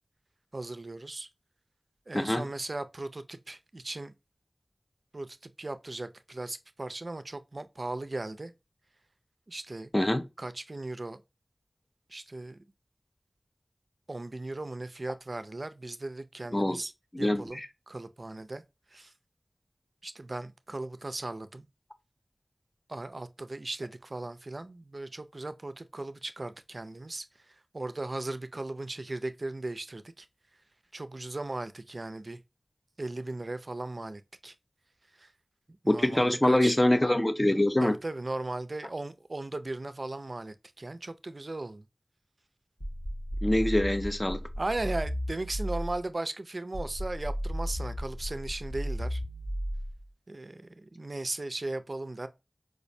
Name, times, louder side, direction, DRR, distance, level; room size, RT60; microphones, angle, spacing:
voice 1, 0.5-1.3 2.1-4.1 5.1-8.5 9.5-9.9 10.4-11.2 12.1-12.6 14.1-16.9 17.2-18.6 18.9-19.1 20.0-21.7 22.9-30.3 30.9-32.4 33.0-34.5 35.2-35.3 35.8-36.8 37.8-41.8 44.6-49.2 50.3-52.3, right 2 dB, 55° right, 0.4 m, -37 dB
voice 2, 2.1-2.5 9.9-10.2 16.5-16.8 17.1-17.7 35.9-37.9 43.4-44.4, left 1 dB, 25° left, 0.4 m, -24 dB
sound 1, 42.8-46.1 46.7-50.1, equal, 55° left, 1.2 m, -34 dB
4.8 x 2.1 x 2.6 m
wide cardioid pair, 45°, 0 cm